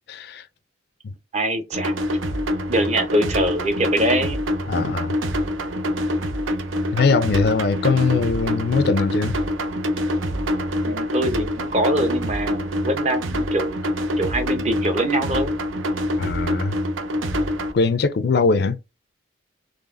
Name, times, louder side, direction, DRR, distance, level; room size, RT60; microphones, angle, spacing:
voice 1, 0.1-0.4 1.0-1.1 4.7-5.2 6.9-9.4 16.2-16.8 17.7-18.8, left 4 dB, 55° left, 0.4 m, -21 dB
voice 2, 1.3-1.9 2.7-4.4 10.8-13.8 14.2-15.6, right 1 dB, 35° right, 0.7 m, -23 dB
sound 1, 1.7-17.7, equal, 85° right, 0.6 m, -25 dB
3.9 x 3.2 x 2.5 m
head